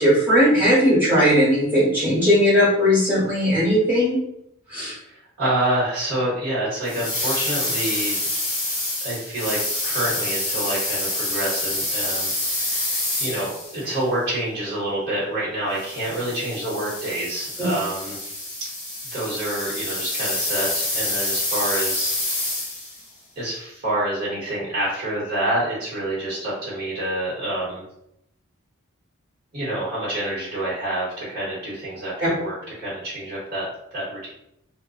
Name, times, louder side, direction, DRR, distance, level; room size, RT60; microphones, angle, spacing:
voice 1, 0.0-4.2 4.7-4.9 17.6-17.7, equal, 10° right, -10 dB, 1.3 m, -18 dB
voice 2, 5.0-8.2 9.0-9.6 9.8-18.4 19.1-22.2 23.4-27.8 29.5-34.3, right 1 dB, 50° right, -9 dB, 0.9 m, -27 dB
sound 1, 6.8-13.9 15.8-23.0, left 1 dB, 20° left, 0.9 m, -27 dB
2.5 x 2.1 x 2.4 m, 0.76 s
head